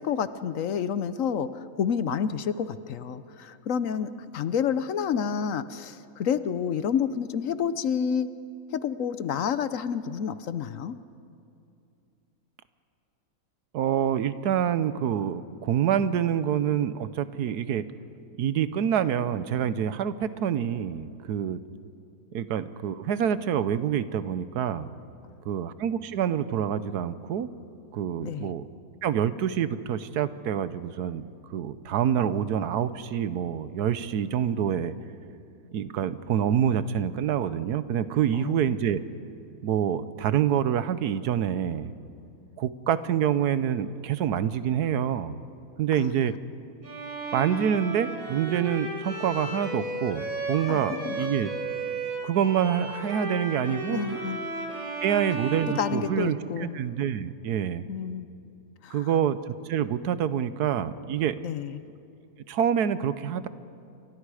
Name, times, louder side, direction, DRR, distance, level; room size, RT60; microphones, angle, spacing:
voice 1, 0.0-8.3 8.7-11.0 28.2-28.5 38.3-38.7 45.9-46.2 50.7-51.2 53.9-54.4 55.8-56.7 57.9-58.3 58.8-59.1 61.4-61.8, left 7 dB, 65° left, 13 dB, 1.1 m, -29 dB
voice 2, 13.7-17.8 18.4-21.6 22.3-24.9 25.4-27.5 27.9-28.7 29.0-34.9 35.7-39.0 39.6-41.9 42.6-45.4 45.8-46.3 47.3-51.5 52.2-54.2 55.0-57.8 58.9-61.4 62.5-63.5, right 9 dB, 90° right, 14 dB, 1.4 m, -26 dB
Bowed string instrument, 46.8-56.6, right 2 dB, 60° right, 4.2 m, -34 dB
29.0 x 24.5 x 4.9 m, 2.6 s
omnidirectional pair, 1.6 m